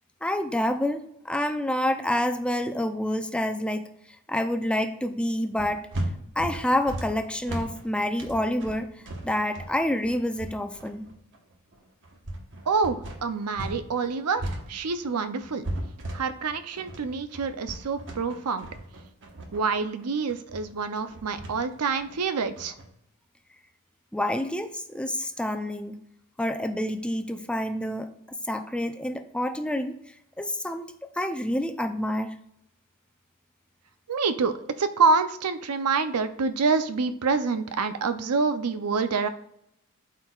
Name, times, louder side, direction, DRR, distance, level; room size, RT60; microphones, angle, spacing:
voice 1, 0.2-3.9 4.3-5.8 6.4-11.1 24.1-25.9 26.4-28.1 28.5-30.0 30.4-30.8 31.2-32.4, left 1 dB, 5° left, 8 dB, 0.4 m, -28 dB
sound 1, 5.6-13.8 14.1-22.9, right 1 dB, 60° right, 1.1 m, -36 dB
voice 2, 12.7-15.6 16.1-18.7 19.5-22.7 34.1-39.3, right 4 dB, 90° right, 11 dB, 0.6 m, -27 dB
12.0 x 4.5 x 2.4 m, 0.78 s
head